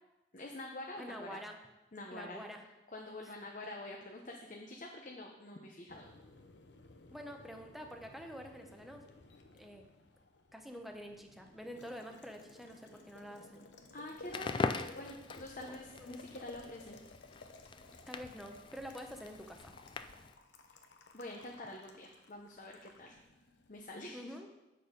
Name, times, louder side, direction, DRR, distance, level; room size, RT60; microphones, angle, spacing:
voice 1, 0.3-1.4 1.9-2.4 2.9-6.1 13.9-17.0 21.1-23.2 23.7-24.3, left 1 dB, 40° left, 0 dB, 0.8 m, -46 dB
voice 2, 1.0-1.6 2.1-2.7 3.2-3.5 7.1-9.1 9.6-9.8 10.5-13.7 15.6-16.2 18.1-19.7 24.1-24.5, equal, ahead, 3 dB, 0.7 m, -47 dB
Boiling, 5.9-23.8, left 3 dB, 70° left, 0.9 m, -58 dB
Crackle, 14.2-20.4, left 3 dB, 25° left, 0.3 m, -42 dB
8.6 x 6.7 x 5.1 m, 1.0 s
head